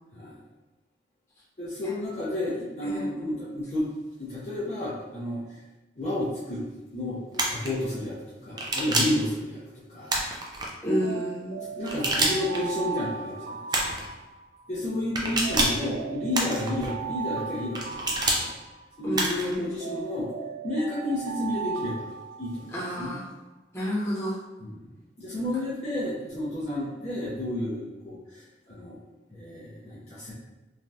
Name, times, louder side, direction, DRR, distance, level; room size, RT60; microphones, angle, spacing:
voice 1, 1.6-3.9 4.2-5.6 6.0-9.6 9.9-10.2 10.8-11.2 11.6-13.9 14.7-18.5 19.0-20.3 20.6-22.1 22.4-23.1 24.6-24.9 25.2-29.0 29.3-30.3, left 1 dB, 40° left, -9 dB, 0.6 m, -31 dB
sound 1, 7.3-7.7 8.6-9.2 10.1-10.7 11.8-12.6 13.7-14.1 15.2-15.9 16.3-16.9 17.8-18.4 19.1-19.5, right 2 dB, 25° right, 0.4 m, -27 dB
voice 2, 10.8-11.6 19.0-19.7 22.7-23.3 23.7-24.4, equal, 15° left, -8 dB, 0.8 m, -31 dB
Alarm, 11.0-14.7 15.4-19.1 19.8-23.0, right 6 dB, 90° right, 0.4 m, -37 dB
3.2 x 2.3 x 2.6 m, 1.1 s
head